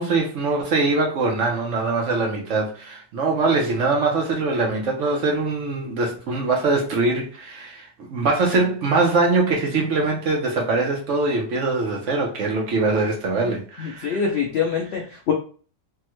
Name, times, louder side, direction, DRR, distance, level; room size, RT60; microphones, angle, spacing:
voice 1, 0.0-14.3, right 3 dB, 65° right, 0.8 m, -22 dB
voice 2, 13.8-15.3, left 6 dB, 90° left, 0.5 m, -24 dB
3.4 x 2.1 x 2.9 m
omnidirectional pair, 1.7 m